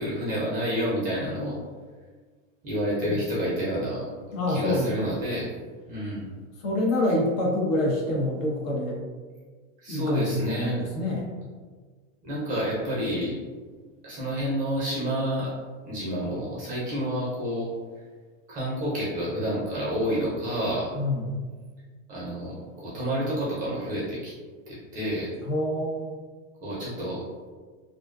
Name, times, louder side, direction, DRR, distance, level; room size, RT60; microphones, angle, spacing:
voice 1, 0.0-1.6 2.6-4.1 4.5-5.5 5.9-6.3 9.8-10.8 12.2-13.4 14.0-15.5 15.9-17.7 18.5-20.9 22.1-24.3 24.7-25.3 26.6-27.2, equal, 20° right, -7 dB, 0.4 m, -29 dB
voice 2, 4.3-5.1 6.6-9.0 9.9-11.3 20.9-21.4 25.4-26.2, left 1 dB, 65° left, -2 dB, 0.8 m, -26 dB
2.4 x 2.2 x 2.3 m, 1.5 s
supercardioid pair, 140°, 42 cm